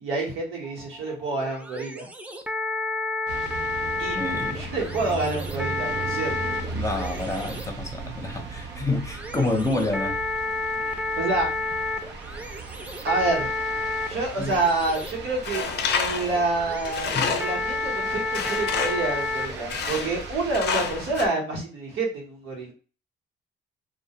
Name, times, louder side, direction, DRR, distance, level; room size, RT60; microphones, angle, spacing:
voice 1, 0.0-2.1 4.0-4.2 4.5-6.5 10.8-11.5 13.0-13.5 14.1-22.7, right 3 dB, 80° right, -2 dB, 1.1 m, -28 dB
sound 1, 0.6-19.7, left 3 dB, 5° right, 0.3 m, -31 dB
sound 2, 3.3-21.3, right 4 dB, 60° right, 0.6 m, -38 dB
voice 2, 4.1-4.6 6.7-10.2 14.4-14.6 17.1-17.2, left 2 dB, 15° left, 2 dB, 0.7 m, -28 dB
Tools, 15.4-17.7 18.3-19.1 19.7-20.3 20.5-21.2, left 5 dB, 60° left, 0.5 m, -28 dB
2.2 x 2.2 x 2.8 m, 0.37 s
cardioid pair, 90°, 20 cm